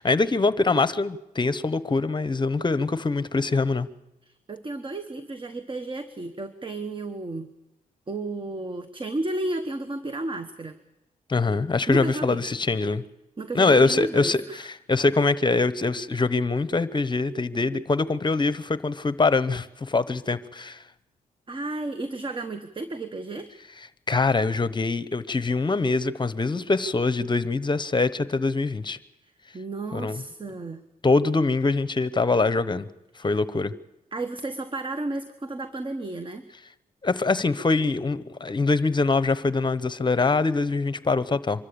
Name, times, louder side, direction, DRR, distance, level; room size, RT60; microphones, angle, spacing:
voice 1, 0.0-3.9 11.3-13.0 13.5-20.8 24.1-29.0 29.9-30.2 31.0-32.9 33.2-33.7 37.0-41.7, left 3 dB, 30° left, 15 dB, 1.0 m, -23 dB
voice 2, 4.3-7.5 8.1-10.8 11.9-12.4 13.4-14.6 21.5-23.5 29.2-30.8 33.2-33.4 34.1-36.5, right 2 dB, 35° right, 9 dB, 1.2 m, -33 dB
24.5 x 13.5 x 8.6 m, 0.94 s
cardioid pair, 75°, 16 cm